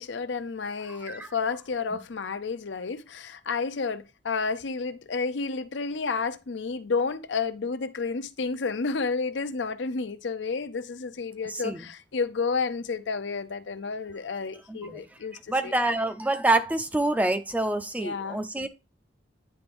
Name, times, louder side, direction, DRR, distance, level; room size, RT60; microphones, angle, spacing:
voice 1, 0.0-15.7 18.0-18.4, left 4 dB, 70° left, 0.6 m, -31 dB
voice 2, 0.9-1.3 1.9-2.0 11.4-11.9 14.7-15.0 15.5-18.7, right 2 dB, 10° right, 0.4 m, -27 dB
9.6 x 3.4 x 3.5 m
head